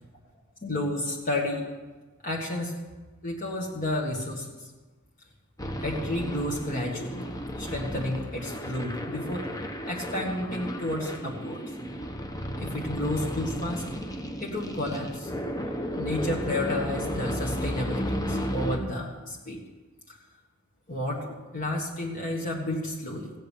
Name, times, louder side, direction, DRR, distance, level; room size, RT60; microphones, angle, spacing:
voice 1, 0.6-1.7 2.2-2.7 3.2-4.5 5.8-7.3 7.6-9.5 9.8-11.6 12.6-13.8 14.4-15.3 16.0-19.6 20.1-20.2 20.9-23.3, left 1 dB, 40° left, -2 dB, 1.7 m, -31 dB
sound 1, 5.6-18.8, equal, 15° left, 1.0 m, -33 dB
15.5 x 6.5 x 9.0 m, 1.3 s
head